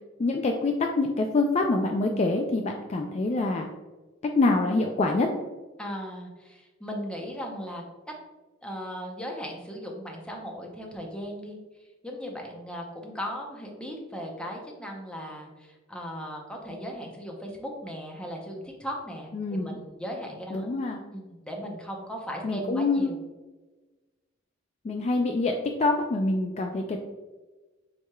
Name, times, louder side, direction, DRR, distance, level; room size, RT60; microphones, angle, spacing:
voice 1, 0.2-3.7 4.4-5.3 19.3-19.8 20.5-21.0 22.4-23.1 24.8-27.0, left 2 dB, 35° left, 3 dB, 0.3 m, -25 dB
voice 2, 5.8-7.8 8.6-11.6 12.0-20.7 21.1-23.2, equal, 5° left, 0 dB, 0.7 m, -37 dB
4.7 x 4.3 x 2.3 m, 1.2 s
head